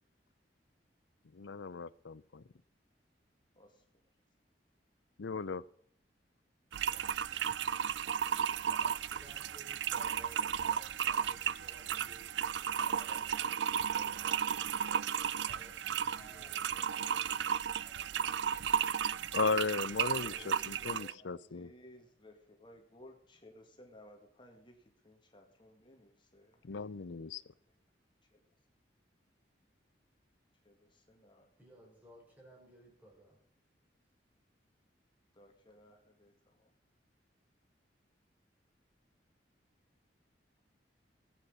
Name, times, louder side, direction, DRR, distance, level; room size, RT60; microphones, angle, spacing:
voice 1, 1.3-2.4 5.2-5.6 19.3-21.7 26.6-27.4, left 4 dB, 90° left, 0.6 m, -36 dB
sound 1, 6.7-21.1, right 8 dB, 75° right, 0.4 m, -34 dB
voice 2, 6.9-7.4 12.8-14.4 14.9-15.5 20.3-27.8 28.2-28.5 30.6-31.5 35.3-36.7, left 1 dB, 25° left, 2.1 m, -59 dB
voice 3, 8.5-12.8 14.2-15.1 15.5-16.9 31.6-33.4, equal, 10° right, 5.0 m, -59 dB
voice 4, 16.1-19.3 20.1-20.5, right 1 dB, 10° left, 1.9 m, -63 dB
19.5 x 8.6 x 5.5 m
head